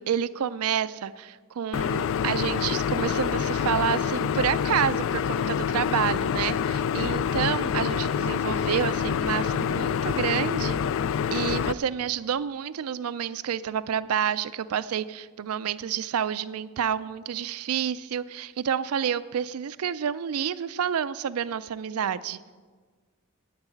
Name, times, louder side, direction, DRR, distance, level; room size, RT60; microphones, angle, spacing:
voice 1, 0.0-10.8 11.3-22.4, right 8 dB, 85° right, 15 dB, 0.4 m, -29 dB
sound 1, 1.7-11.7, left 7 dB, 60° left, 0.3 m, -26 dB
9.5 x 8.0 x 9.0 m, 1.5 s
head